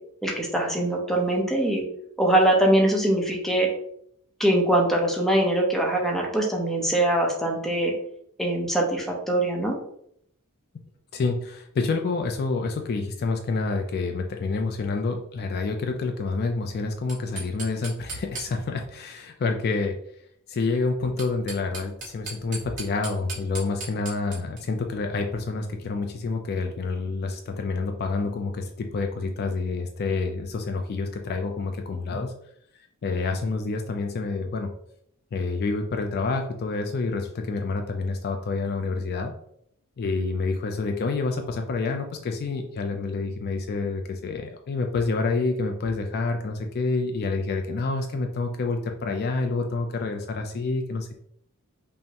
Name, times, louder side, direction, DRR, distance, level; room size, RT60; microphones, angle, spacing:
voice 1, 0.2-1.8 2.2-3.7 4.4-7.9 8.4-9.8, right 1 dB, ahead, 0 dB, 0.6 m, -22 dB
voice 2, 11.1-20.0 20.5-32.3 33.0-34.7 35.3-39.3 40.0-51.2, left 3 dB, 45° left, 4 dB, 0.3 m, -28 dB
sound 1, 17.1-18.9 21.0-24.6, right 3 dB, 35° right, 1.3 m, -38 dB
5.4 x 2.1 x 2.8 m, 0.70 s
head